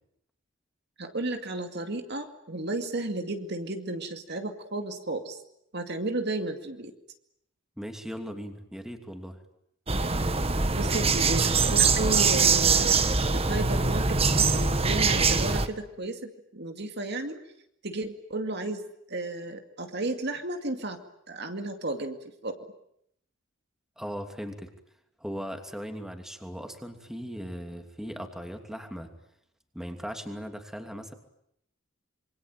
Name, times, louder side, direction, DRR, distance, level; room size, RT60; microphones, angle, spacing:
voice 1, 1.0-5.4 5.7-6.9 10.7-17.4 17.8-18.8 19.1-21.0 21.3-22.2 22.4-22.6, right 2 dB, 55° right, 6 dB, 2.3 m, -33 dB
voice 2, 7.8-9.4 24.0-24.7 25.2-29.1 29.7-31.1, equal, ahead, 5 dB, 2.8 m, -38 dB
sound 1, 9.9-15.7, right 4 dB, 30° right, 1.4 m, -23 dB
26.5 x 24.0 x 9.1 m, 0.74 s
head